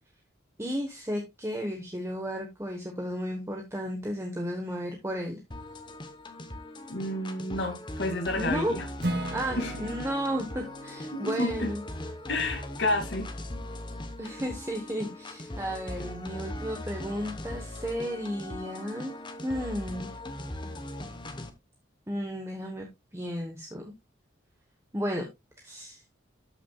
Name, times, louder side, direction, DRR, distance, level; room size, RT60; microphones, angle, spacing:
voice 1, 0.6-5.4 8.4-8.7 9.3-11.8 14.2-19.1 19.4-20.1 22.1-22.9 23.1-23.9 24.9-25.3 25.6-26.0, equal, 15° right, 1.2 m, -33 dB
sound 1, 5.5-21.5, left 1 dB, 25° left, 1.0 m, -40 dB
voice 2, 6.9-8.9 9.6-9.9 11.1-11.7 12.3-13.3, left 2 dB, 65° left, 2.3 m, -30 dB
Acoustic guitar / Strum, 9.0-13.1, right 1 dB, 55° right, 1.4 m, -38 dB
13.0 x 6.0 x 2.3 m
head